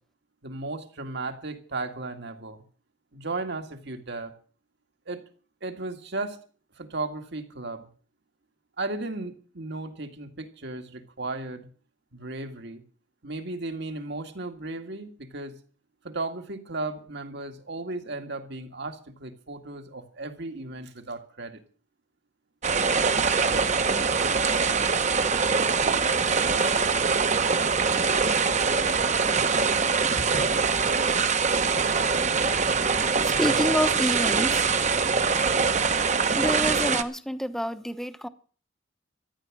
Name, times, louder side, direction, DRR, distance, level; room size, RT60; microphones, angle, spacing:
voice 1, 0.4-2.6 3.1-4.3 5.1-5.3 5.6-6.4 6.8-7.9 8.8-11.7 12.1-12.8 13.2-15.6 16.0-21.6 30.1-30.5, right 2 dB, 65° right, 2.2 m, -35 dB
sound 1, 22.6-37.0, right 5 dB, 40° right, 1.1 m, -23 dB
voice 2, 33.2-34.7 36.3-38.3, equal, ahead, 0.9 m, -28 dB
14.5 x 10.5 x 7.6 m
head